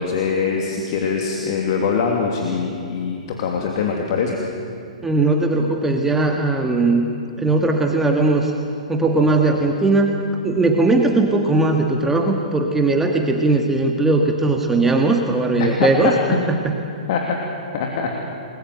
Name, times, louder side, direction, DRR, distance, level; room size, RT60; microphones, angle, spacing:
voice 1, 0.0-4.4 15.6-16.1 17.1-17.4 17.7-18.1, left 5 dB, 45° left, 1 dB, 2.9 m, -23 dB
voice 2, 5.0-7.1 7.4-8.5 8.9-10.1 10.4-16.7, right 2 dB, 10° right, 2 dB, 1.8 m, -18 dB
30.0 x 21.0 x 7.9 m, 2.6 s
figure-of-eight pair, 115°, 4 cm